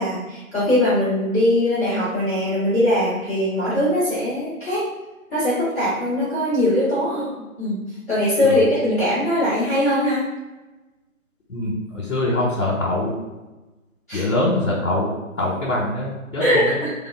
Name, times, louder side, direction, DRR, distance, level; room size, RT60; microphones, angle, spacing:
voice 1, 0.0-4.8 5.3-7.3 7.6-10.2 14.1-14.3 16.4-16.9, left 1 dB, 10° left, -16 dB, 1.1 m, -21 dB
voice 2, 11.5-13.1 14.1-15.1 15.4-16.8, left 1 dB, 65° left, -4 dB, 1.1 m, -23 dB
3.5 x 2.1 x 3.7 m, 1.1 s
figure-of-eight pair, 160°, 43 cm